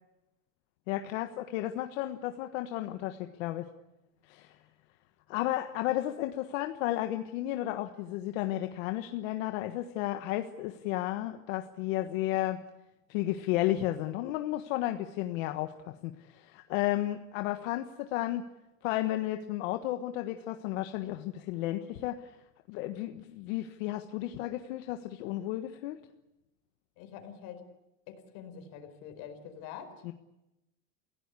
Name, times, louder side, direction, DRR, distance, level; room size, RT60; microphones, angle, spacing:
voice 1, 0.9-3.7 4.3-4.5 5.3-12.6 13.1-18.4 18.8-22.4 22.7-26.0 30.0-30.1, left 14 dB, 80° left, 7 dB, 1.5 m, -33 dB
voice 2, 27.0-27.7 28.1-30.0, left 8 dB, 55° left, 7 dB, 4.7 m, -45 dB
29.0 x 17.0 x 8.3 m, 0.95 s
cardioid pair, 170°, 39 cm